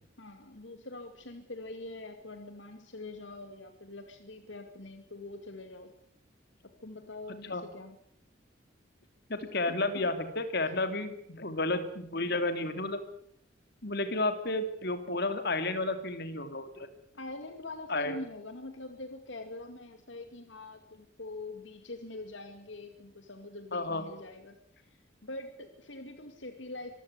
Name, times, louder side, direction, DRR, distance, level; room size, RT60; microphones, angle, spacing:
voice 1, 0.2-5.9 6.6-8.0 9.7-10.1 17.1-24.6 24.8-27.0, left 2 dB, 75° left, 7 dB, 2.4 m, -44 dB
voice 2, 9.3-13.0 13.8-16.9 17.9-18.2 23.7-24.0, left 2 dB, 60° left, 9 dB, 3.0 m, -31 dB
24.5 x 15.5 x 9.8 m, 0.70 s
head